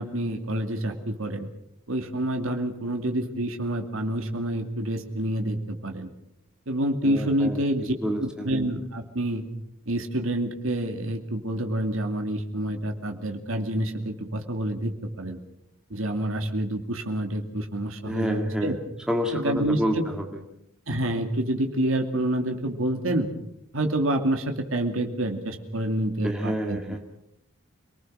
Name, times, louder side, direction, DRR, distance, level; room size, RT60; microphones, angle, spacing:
voice 1, 0.0-1.5 1.9-6.1 6.7-7.9 8.2-9.5 9.9-15.4 15.9-18.8 19.3-20.1 20.9-23.3 23.7-26.8, right 1 dB, 75° right, 4 dB, 2.5 m, -28 dB
voice 2, 7.0-7.6 8.0-8.5 18.0-18.7 19.1-20.4 26.2-27.0, equal, 5° right, 1 dB, 2.0 m, -28 dB
26.5 x 19.5 x 6.4 m, 0.78 s
head